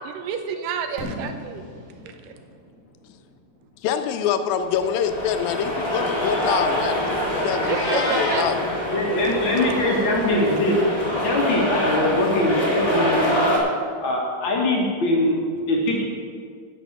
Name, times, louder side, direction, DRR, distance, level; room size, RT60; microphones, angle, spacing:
voice 1, 0.2-1.6 2.2-2.3 7.6-8.4, right 6 dB, 75° right, 7 dB, 2.1 m, -29 dB
Fireworks, 1.0-4.8, equal, 45° right, 1.0 m, -39 dB
voice 2, 3.8-7.1 7.4-8.6, left 8 dB, 85° left, 8 dB, 2.4 m, -25 dB
sound 1, 4.6-13.6, equal, 15° left, 1.0 m, -25 dB
Meow, 7.6-8.5, left 2 dB, 65° left, 0.4 m, -28 dB
voice 3, 8.9-10.8 11.2-13.4 14.0-15.4 15.7-16.0, left 1 dB, 50° left, -2 dB, 1.5 m, -22 dB
10.0 x 6.8 x 7.2 m, 2.1 s
omnidirectional pair, 4.1 m